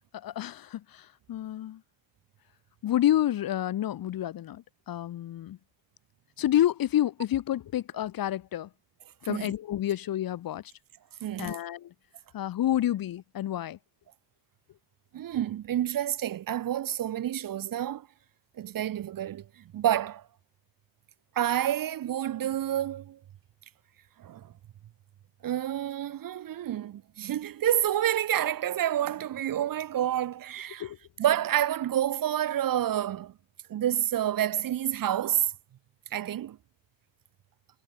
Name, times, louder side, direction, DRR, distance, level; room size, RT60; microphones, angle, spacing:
voice 1, 0.1-1.8 2.8-5.6 6.4-8.7 9.2-10.7 11.4-11.9 12.3-13.8 30.8-31.0, left 12 dB, 50° left, 0.8 m, -29 dB
voice 2, 11.2-11.6 15.1-18.1 18.6-20.3 21.3-23.2 24.2-24.5 25.4-30.9 31.2-33.3 33.7-35.5 36.1-36.6, right 11 dB, 45° right, 0.8 m, -29 dB
cardioid pair, 160°, 45 cm